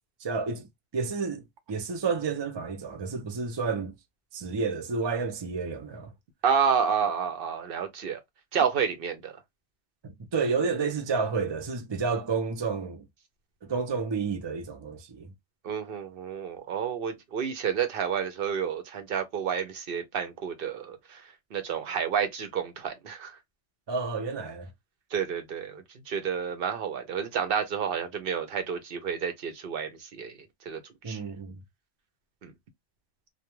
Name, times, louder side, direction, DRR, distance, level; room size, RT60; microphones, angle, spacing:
voice 1, 0.2-0.7 0.9-3.9 4.3-6.1 10.0-13.1 13.6-15.3 23.9-24.7 31.0-31.6, right 5 dB, 40° right, 0.4 m, -30 dB
voice 2, 6.4-8.2 8.5-9.4 15.6-21.2 21.5-23.4 25.1-30.4 30.7-30.8 31.1-31.2 32.4-32.5, right 7 dB, 60° right, 0.8 m, -30 dB
2.2 x 2.2 x 2.9 m
omnidirectional pair, 1.1 m